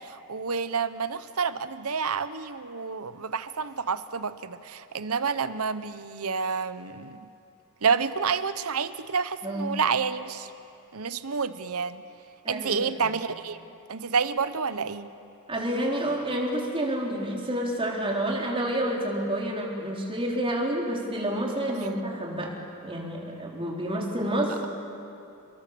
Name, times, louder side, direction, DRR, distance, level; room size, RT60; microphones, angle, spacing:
voice 1, 0.0-7.2 7.8-10.5 10.9-12.0 12.5-13.6 13.9-15.1, right 5 dB, 75° right, 13 dB, 1.0 m, -29 dB
voice 2, 9.4-9.8 12.4-13.1 15.5-22.6 22.8-24.5, right 1 dB, 25° right, -2 dB, 4.3 m, -29 dB
30.0 x 22.5 x 7.0 m, 2.6 s
head